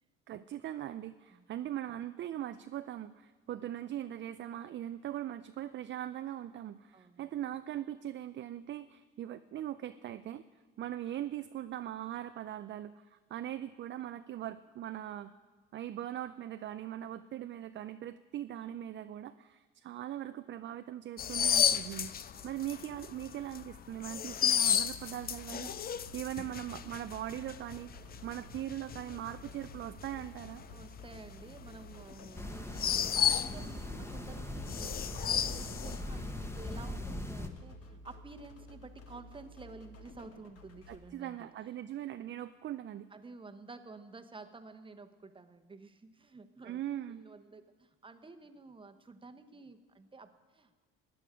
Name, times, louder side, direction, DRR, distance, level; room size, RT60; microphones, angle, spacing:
voice 1, 0.3-10.4 10.8-15.3 15.7-30.6 40.9-43.1 46.6-47.2, right 12 dB, 40° right, 11 dB, 0.4 m, -40 dB
voice 2, 6.9-7.3 22.3-22.5 24.3-24.4 30.7-41.5 43.1-46.8 47.1-50.8, right 3 dB, 15° right, 8 dB, 1.0 m, -51 dB
sound 1, 21.2-34.0 34.3-36.4 36.7-37.0, left 9 dB, 30° left, 0.5 m, -33 dB
sound 2, 24.8-41.0, equal, 55° left, 1.6 m, -53 dB
sound 3, 32.4-37.5, left 1 dB, 10° left, 1.1 m, -40 dB
15.5 x 9.7 x 5.0 m, 1.4 s
supercardioid pair, 75°, 30 cm